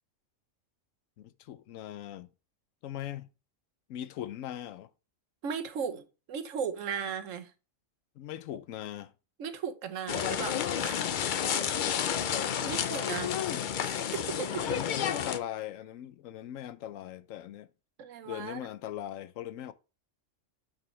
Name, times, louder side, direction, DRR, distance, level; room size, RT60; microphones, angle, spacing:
voice 1, 1.2-2.3 2.8-3.3 3.9-4.9 8.2-9.1 13.0-13.7 14.3-17.7 18.3-19.7, left 12 dB, 85° left, 1.0 m, -39 dB
voice 2, 5.4-7.5 9.4-11.1 11.5-11.6 12.1-13.3 13.8-14.8 18.0-18.7, right 7 dB, 75° right, 1.2 m, -37 dB
sound 1, 10.1-15.4, left 8 dB, 60° left, 0.5 m, -31 dB
7.1 x 6.0 x 3.1 m
omnidirectional pair, 1.3 m